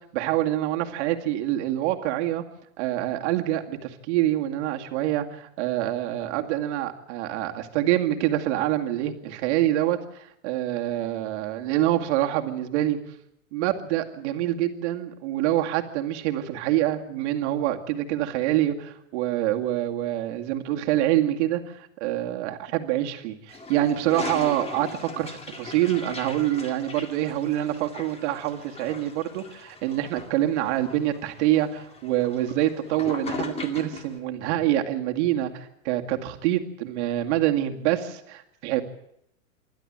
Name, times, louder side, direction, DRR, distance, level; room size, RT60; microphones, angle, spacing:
voice 1, 0.1-2.4 2.8-13.0 13.5-38.8, right 13 dB, 55° right, 4 dB, 2.2 m, -26 dB
Toilet flush, 23.5-34.2, left 4 dB, 15° left, 2.2 m, -39 dB
27.0 x 11.5 x 8.8 m, 0.77 s
hypercardioid pair, 135°, 42 cm